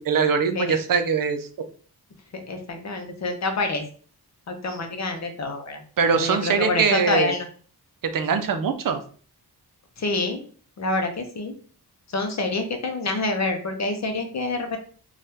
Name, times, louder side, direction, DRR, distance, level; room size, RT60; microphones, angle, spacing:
voice 1, 0.1-1.7 6.0-7.3 8.0-9.0, right 6 dB, 60° right, 8 dB, 0.5 m, -22 dB
voice 2, 2.5-3.8 4.5-5.8 6.1-7.5 10.0-10.4 10.8-11.5 12.1-14.8, left 3 dB, 45° left, 5 dB, 0.6 m, -27 dB
3.4 x 2.3 x 2.7 m, 0.43 s
wide cardioid pair, 170°, 39 cm